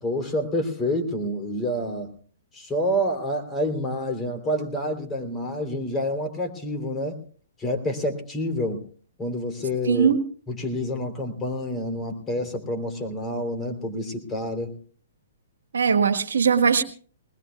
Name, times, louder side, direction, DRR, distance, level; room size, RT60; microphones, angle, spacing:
voice 1, 0.0-2.1 2.5-7.2 7.6-8.8 9.2-10.1 10.5-14.7, equal, 20° left, 3.3 m, -28 dB
voice 2, 9.9-10.2 15.7-16.8, right 6 dB, 75° right, 1.6 m, -20 dB
21.5 x 20.0 x 2.3 m
hypercardioid pair, 125°, 0 cm